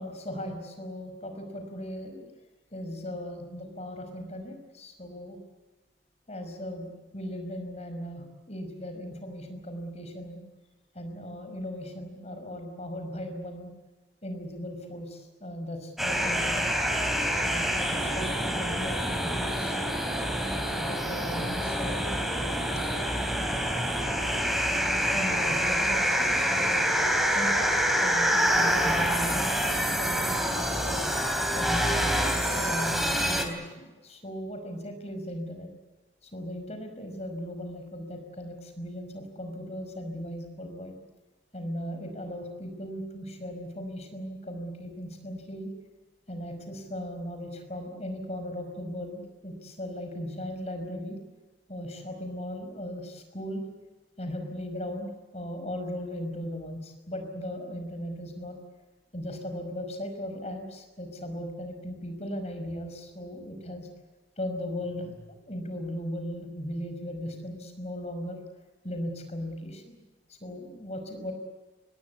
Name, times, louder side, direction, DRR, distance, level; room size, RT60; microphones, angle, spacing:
voice 1, 0.0-2.3 2.7-5.4 6.3-10.4 10.9-13.7 14.2-16.7 17.3-19.7 20.7-22.1 22.8-22.9 25.1-26.9 27.3-27.7 28.0-31.1 31.5-35.7 36.2-41.0 41.5-45.7 46.3-51.2 51.7-53.6 54.2-58.5 59.1-63.9 64.4-68.4 68.8-70.0 70.4-71.3, equal, 35° left, 6 dB, 5.5 m, -37 dB
sound 1, 16.0-33.4, equal, ahead, 3.5 m, -26 dB
25.5 x 20.5 x 8.4 m, 1.3 s
head